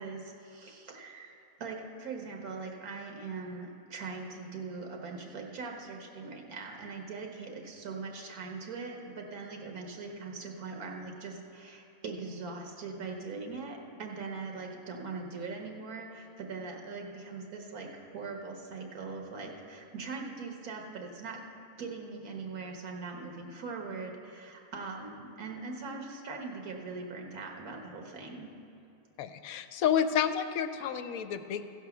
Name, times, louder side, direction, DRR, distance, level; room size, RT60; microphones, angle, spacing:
voice 1, 0.0-1.3 1.6-21.4 21.8-28.5, right 4 dB, 85° right, 2 dB, 1.6 m, -41 dB
voice 2, 29.2-31.6, left 8 dB, 75° left, 10 dB, 1.0 m, -30 dB
15.5 x 5.5 x 5.9 m, 2.7 s
omnidirectional pair, 1.5 m